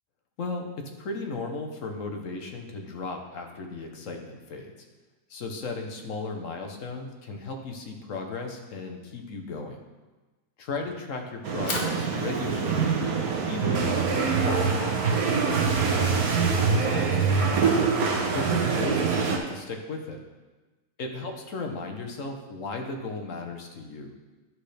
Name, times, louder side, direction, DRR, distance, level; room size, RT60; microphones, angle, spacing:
voice 1, 0.4-4.7 5.3-9.8 10.6-13.0 13.5-17.9 18.3-20.2 21.0-24.1, left 3 dB, 55° left, 3 dB, 1.3 m, -36 dB
Fire, 11.4-17.6, left 2 dB, 35° left, 0.9 m, -41 dB
sound 1, 11.4-19.4, right 5 dB, 70° right, 1.4 m, -24 dB
11.0 x 6.2 x 3.3 m, 1.2 s
omnidirectional pair, 1.7 m